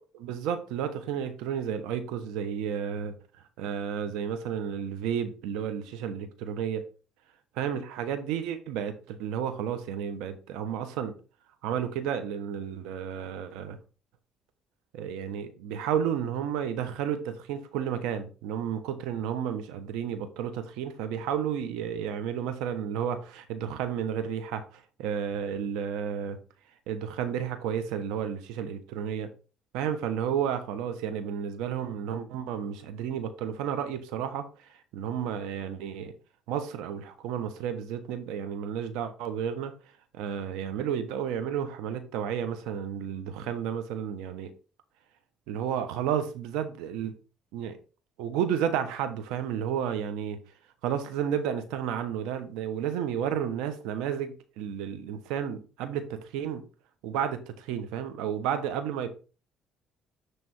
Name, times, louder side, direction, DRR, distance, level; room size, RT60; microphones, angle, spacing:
voice 1, 0.1-3.1 3.6-6.8 7.6-11.1 11.6-13.8 14.9-26.4 26.9-29.3 29.7-34.5 34.9-36.1 36.5-39.7 40.1-44.5 45.5-47.2 47.5-47.8 48.2-50.4 50.8-56.6 57.0-59.1, right 8 dB, 85° right, 1.3 m, -32 dB
10.0 x 3.5 x 4.6 m
cardioid pair, 100°, 0 cm